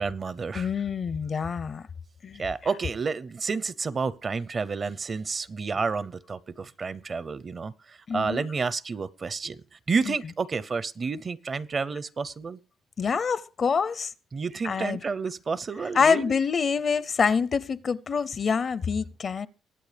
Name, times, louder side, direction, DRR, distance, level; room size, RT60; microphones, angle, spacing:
voice 1, 0.0-0.7 2.4-12.6 14.3-16.3, right 4 dB, 40° right, 0.5 m, -30 dB
voice 2, 0.5-1.8 2.2-2.4 8.1-8.5 10.1-10.2 13.0-14.1 14.6-15.0 15.9-19.5, left 6 dB, 45° left, 0.5 m, -26 dB
22.0 x 8.6 x 3.3 m
cardioid pair, 90°, 0 cm